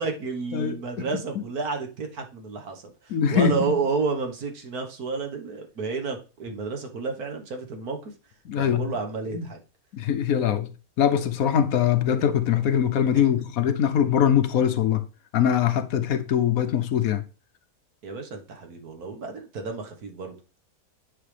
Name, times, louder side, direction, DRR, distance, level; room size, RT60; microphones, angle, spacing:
voice 1, 0.0-8.1 8.5-9.6 13.4-13.5 18.0-20.4, right 4 dB, 85° right, 1.8 m, -31 dB
voice 2, 0.5-1.4 3.1-3.8 8.5-8.9 9.3-9.4 9.9-10.7 11.0-15.0 15.3-17.2, left 9 dB, 75° left, 1.2 m, -23 dB
9.9 x 5.7 x 3.3 m
omnidirectional pair, 1.5 m